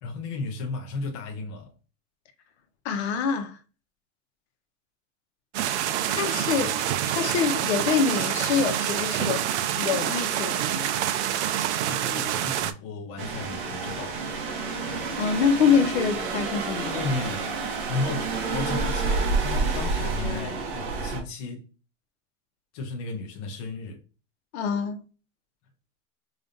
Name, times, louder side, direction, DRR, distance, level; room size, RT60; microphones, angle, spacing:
voice 1, 0.0-1.7 11.8-14.2 16.9-17.6 17.9-21.7 22.7-24.0, left 3 dB, 25° left, 0.4 m, -34 dB
voice 2, 2.8-3.6 6.1-6.8 7.1-9.5 9.8-10.9 15.2-17.0 24.5-25.0, left 6 dB, 60° left, 0.8 m, -25 dB
sound 1, 5.5-12.7, right 11 dB, 65° right, 0.5 m, -27 dB
sound 2, 13.2-21.2, right 3 dB, 50° right, 1.0 m, -29 dB
4.9 x 2.5 x 2.6 m
supercardioid pair, 180°, 37 cm